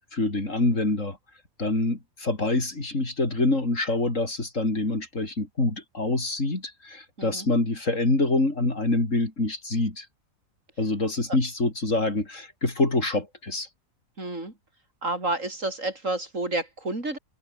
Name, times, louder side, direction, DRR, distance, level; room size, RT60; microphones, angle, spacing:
voice 1, 0.1-1.2 1.6-10.0 10.8-13.7, left 2 dB, 65° left, 5.0 m, -26 dB
voice 2, 14.2-14.5 15.0-17.2, right 2 dB, 65° right, 5.8 m, -30 dB
open air
omnidirectional pair, 1.4 m